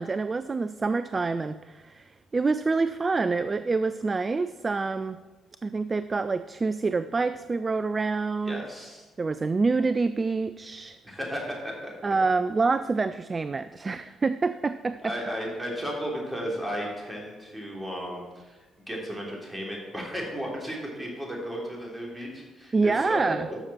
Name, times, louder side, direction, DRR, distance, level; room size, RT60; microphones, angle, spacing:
voice 1, 0.0-5.2 5.6-8.6 9.2-11.0 12.0-15.2 22.7-23.5, right 4 dB, 30° right, 13 dB, 0.3 m, -27 dB
voice 2, 8.4-9.0 11.0-11.9 13.8-14.1 15.0-18.6 18.9-23.2 23.5-23.6, equal, 15° right, -1 dB, 3.4 m, -34 dB
13.0 x 6.6 x 4.3 m, 1.3 s
figure-of-eight pair, 45°, 0 cm